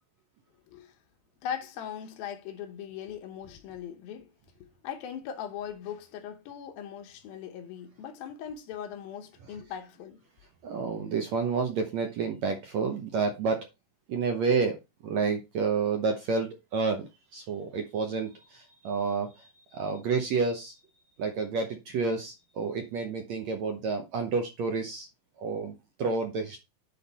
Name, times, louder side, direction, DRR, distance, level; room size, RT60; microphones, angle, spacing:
voice 1, 1.4-4.3 4.8-10.2, left 8 dB, 80° left, 2.8 m, -39 dB
voice 2, 10.6-13.7 14.1-14.8 15.0-20.7 21.2-25.1 25.4-26.6, right 5 dB, 70° right, 1.8 m, -30 dB
9.9 x 3.8 x 4.1 m
omnidirectional pair, 4.2 m